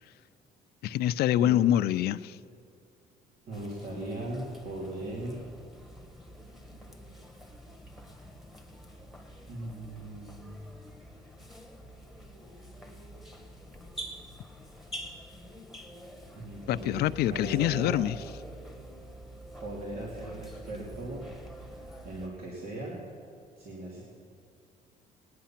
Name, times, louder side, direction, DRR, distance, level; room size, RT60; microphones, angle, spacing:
voice 1, 0.8-2.4 16.7-18.2, left 12 dB, 70° left, 14 dB, 0.5 m, -25 dB
sound 1, 3.5-22.3, right 1 dB, ahead, 1.7 m, -47 dB
voice 2, 3.5-5.4 9.5-10.5 16.3-18.0 19.6-21.3 22.0-23.0 23.6-24.0, right 1 dB, 60° right, -4 dB, 2.9 m, -38 dB
20.5 x 9.6 x 5.8 m, 2.6 s
cardioid pair, 110°, 17 cm